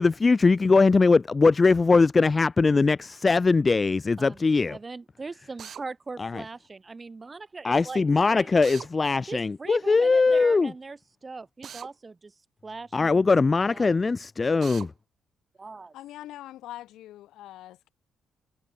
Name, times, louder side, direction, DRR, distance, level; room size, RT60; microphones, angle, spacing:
voice 1, 0.0-4.8 6.2-6.4 7.6-10.7 12.9-14.9, left 4 dB, 30° left, 0.4 m, -21 dB
voice 2, 4.7-8.0 8.3-8.5 9.3-12.3 12.6-13.3 13.7-13.9 15.6-15.9, right 3 dB, 25° right, 1.0 m, -40 dB
Drill, 5.6-5.8 8.6-8.9 11.6-11.9 14.6-14.9, right 8 dB, 60° right, 4.5 m, -41 dB
voice 3, 15.9-17.9, left 14 dB, 85° left, 1.4 m, -43 dB
cardioid pair, 90°, 0 cm